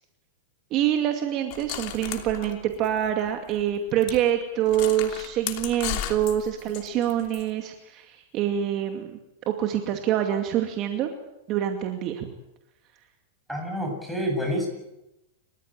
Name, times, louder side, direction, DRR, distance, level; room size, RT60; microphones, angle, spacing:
voice 1, 0.7-9.2 9.5-11.1 11.5-12.3, right 10 dB, 40° right, 4 dB, 2.4 m, -26 dB
sound 1, 1.5-3.3 3.6-3.7 4.0-4.2 4.7-7.4, left 12 dB, 50° left, 3.0 m, -35 dB
voice 2, 13.5-14.7, equal, ahead, 1 dB, 7.9 m, -28 dB
29.5 x 15.0 x 9.0 m, 0.93 s
hypercardioid pair, 130°, 0 cm